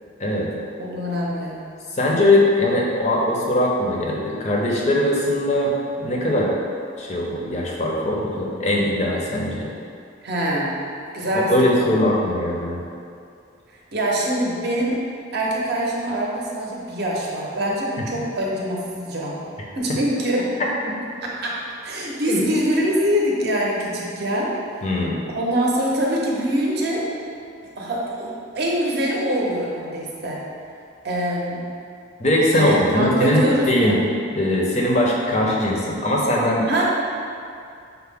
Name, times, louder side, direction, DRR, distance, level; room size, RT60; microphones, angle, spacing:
voice 1, 0.8-1.6 10.2-10.7 11.1-11.9 13.9-15.0 15.3-19.4 19.7-20.4 21.2-24.8 25.3-27.1 27.8-30.4 31.0-31.6 32.5-33.9 36.7-36.8, equal, 55° right, -3 dB, 0.6 m, -24 dB
voice 2, 1.9-5.7 6.0-6.5 7.0-9.7 11.3-12.8 18.0-18.1 20.8-20.9 22.3-22.4 24.8-25.2 32.2-34.0 34.3-36.7, left 1 dB, 35° left, -3 dB, 0.5 m, -20 dB
5.7 x 2.0 x 3.4 m, 2.5 s
head